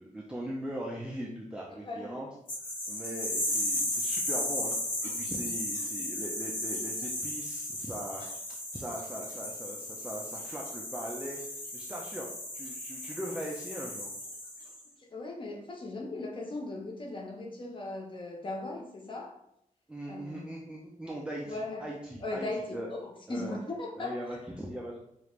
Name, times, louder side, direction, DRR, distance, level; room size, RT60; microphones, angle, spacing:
voice 1, 0.0-2.3 2.9-4.8 5.0-12.3 12.5-14.1 19.9-22.9 23.3-23.6 24.0-25.0, right 1 dB, 5° right, -3 dB, 0.4 m, -40 dB
voice 2, 1.7-2.2 15.0-19.4 20.1-20.6 21.5-21.9 22.2-24.4, left 2 dB, 35° left, 0 dB, 0.7 m, -38 dB
sound 1, 2.5-14.8, left 1 dB, 80° left, 1.1 m, -35 dB
4.9 x 2.4 x 3.0 m, 0.76 s
wide cardioid pair, 180°, 14 cm